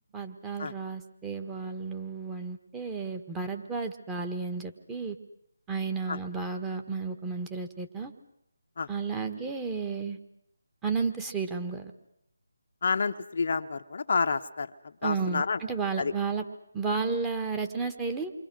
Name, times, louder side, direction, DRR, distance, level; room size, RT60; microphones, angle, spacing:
voice 1, 0.1-5.2 5.7-8.1 8.9-10.2 10.8-11.9 15.0-16.4 16.7-18.3, right 4 dB, 10° right, 4 dB, 1.6 m, -32 dB
voice 2, 12.8-14.7 15.0-15.6 16.0-16.1, left 5 dB, 50° left, 6 dB, 1.0 m, -29 dB
28.0 x 24.5 x 6.3 m, 0.76 s
figure-of-eight pair, 160°, 0 cm